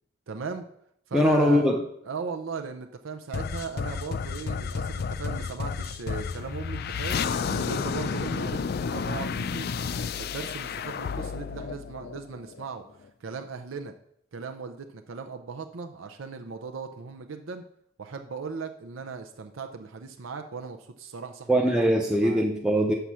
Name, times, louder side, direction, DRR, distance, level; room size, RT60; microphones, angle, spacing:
voice 1, 0.3-0.6 1.1-1.7 2.1-9.7 10.2-13.9 14.3-17.6 18.0-21.7 22.1-22.4, right 5 dB, 90° right, 5 dB, 0.6 m, -38 dB
voice 2, 1.1-1.8 21.5-22.9, equal, 5° right, 0 dB, 0.6 m, -21 dB
sound 1, 3.3-12.7, left 5 dB, 55° left, 0.4 m, -31 dB
6.8 x 5.8 x 6.2 m, 0.73 s
head